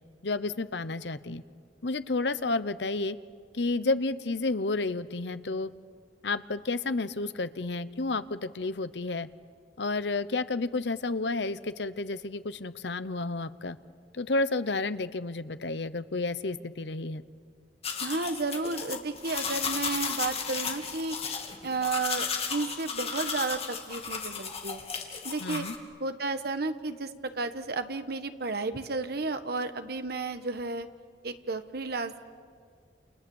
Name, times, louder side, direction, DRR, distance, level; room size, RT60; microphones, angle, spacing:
voice 1, 0.2-1.4 1.8-3.2 3.5-5.7 6.2-9.3 9.8-13.8 14.1-17.2 25.4-25.7, left 3 dB, 75° left, 13 dB, 0.9 m, -31 dB
sound 1, 17.8-25.8, left 6 dB, 35° left, 2.6 m, -34 dB
voice 2, 18.0-21.2 21.6-24.8 25.2-25.7 26.0-30.9 31.2-32.2, right 3 dB, 60° right, 9 dB, 1.4 m, -32 dB
29.0 x 29.0 x 7.2 m, 2.1 s
head